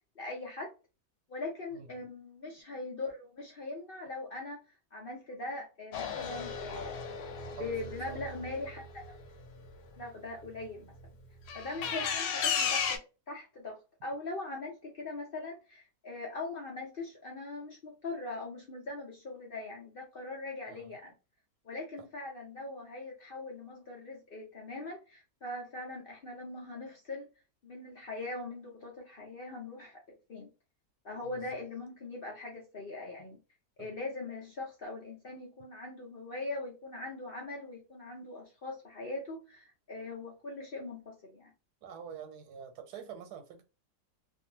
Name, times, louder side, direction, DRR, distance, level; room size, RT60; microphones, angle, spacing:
voice 1, 0.2-0.7 1.3-4.6 4.9-7.0 7.6-9.1 10.0-10.9 11.5-13.0 13.3-13.8 14.0-21.1 21.6-27.3 27.6-30.5 31.0-33.4 33.8-41.5, left 2 dB, 55° left, 0.6 m, -41 dB
voice 2, 1.7-2.1 7.6-8.4 11.7-12.1 20.7-20.9 22.0-22.1 31.2-31.6 33.8-34.0 41.8-43.6, right 7 dB, 90° right, 1.3 m, -47 dB
sound 1, 5.9-9.7 11.5-13.0, left 6 dB, 90° left, 1.2 m, -35 dB
2.6 x 2.4 x 2.8 m
omnidirectional pair, 1.7 m